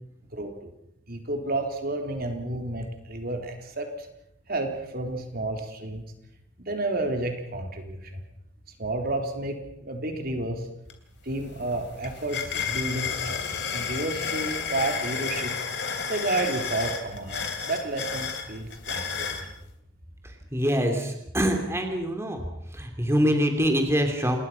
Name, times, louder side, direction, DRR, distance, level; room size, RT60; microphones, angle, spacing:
voice 1, 0.3-0.7 1.1-4.1 4.5-6.0 6.6-8.2 8.8-10.7 11.2-15.6 16.1-19.5, right 2 dB, 55° right, 4 dB, 3.8 m, -31 dB
sound 1, 10.9-11.0 11.3-19.5, left 6 dB, 65° left, 3.3 m, -32 dB
voice 2, 20.5-22.4 22.7-24.4, equal, 15° right, 4 dB, 3.0 m, -24 dB
28.0 x 21.0 x 5.8 m, 0.80 s
head